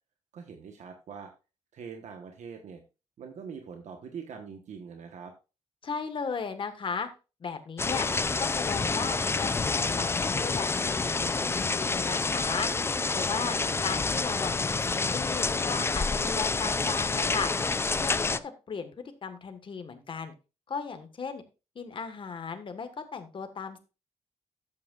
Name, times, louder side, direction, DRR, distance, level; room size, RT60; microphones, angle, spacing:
voice 1, 0.3-1.3 1.7-2.8 3.2-5.3 13.3-13.9 18.2-18.4, right 6 dB, 75° right, 4 dB, 1.2 m, -43 dB
voice 2, 5.8-7.1 7.4-8.1 8.4-12.7 13.2-17.5 18.0-20.3 20.7-21.4 21.7-23.8, left 5 dB, 45° left, 8 dB, 1.5 m, -36 dB
sound 1, 7.8-18.4, left 4 dB, 20° left, 0.4 m, -28 dB
12.5 x 8.7 x 2.4 m, 0.30 s
wide cardioid pair, 140°, 12 cm